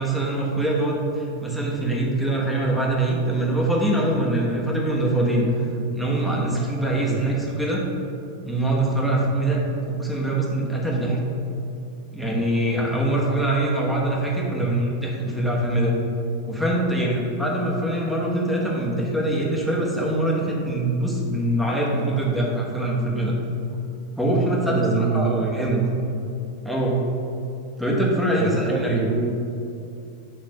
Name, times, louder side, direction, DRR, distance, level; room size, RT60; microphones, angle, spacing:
voice 1, 0.0-5.5 5.9-7.8 8.4-9.6 9.9-11.2 12.1-15.9 16.5-23.3 24.2-25.8 26.6-27.0 27.8-29.0, right 1 dB, ahead, -4 dB, 1.2 m, -23 dB
voice 2, 24.7-25.4 25.8-25.9 28.4-29.3, right 5 dB, 35° right, 3 dB, 0.4 m, -25 dB
6.6 x 3.1 x 5.4 m, 2.7 s
figure-of-eight pair, 90°, 0 cm